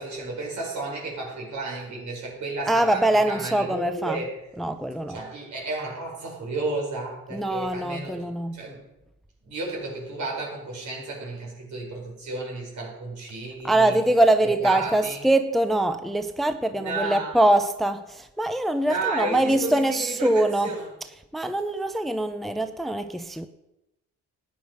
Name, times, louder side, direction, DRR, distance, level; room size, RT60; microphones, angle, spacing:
voice 1, 0.0-4.4 5.1-8.8 9.4-14.0 14.6-15.2 16.7-17.4 18.9-20.9, right 3 dB, 70° right, 5.1 m, -32 dB
voice 2, 2.7-4.2 4.6-5.2 7.3-8.6 13.6-20.7 21.3-23.5, right 1 dB, ahead, 0.6 m, -23 dB
13.5 x 9.4 x 5.3 m
cardioid pair, 90°, 30 cm